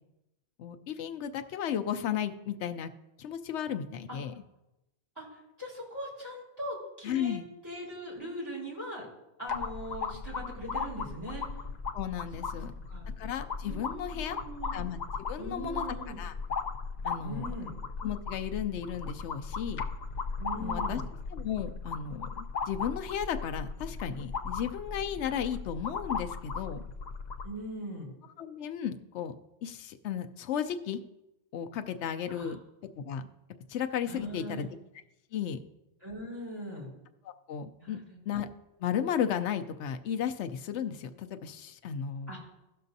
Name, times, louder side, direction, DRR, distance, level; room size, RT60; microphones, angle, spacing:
voice 1, 0.6-2.9 3.2-4.3 7.0-7.5 11.9-12.7 13.1-14.4 14.7-15.8 16.2-16.3 17.0-17.5 18.0-19.8 20.6-21.0 21.3-26.8 28.4-29.3 29.6-31.0 31.5-32.6 33.0-33.3 33.7-34.7 35.3-35.6 37.2-38.0 38.3-38.5 38.8-42.3, left 8 dB, 85° left, 8 dB, 0.9 m, -34 dB
voice 2, 5.2-7.4 7.6-9.1 9.4-11.5 12.5-12.6 12.9-13.0 13.6-14.8 15.4-16.2 17.2-17.8 20.4-21.0 27.4-28.1 32.3-32.5 34.1-34.7 36.0-36.9 37.8-38.2 42.3-42.5, equal, 20° right, -6 dB, 4.0 m, -40 dB
sound 1, 9.5-27.5, left 5 dB, 50° left, 0.6 m, -37 dB
17.0 x 6.6 x 2.7 m, 0.95 s
omnidirectional pair, 1.1 m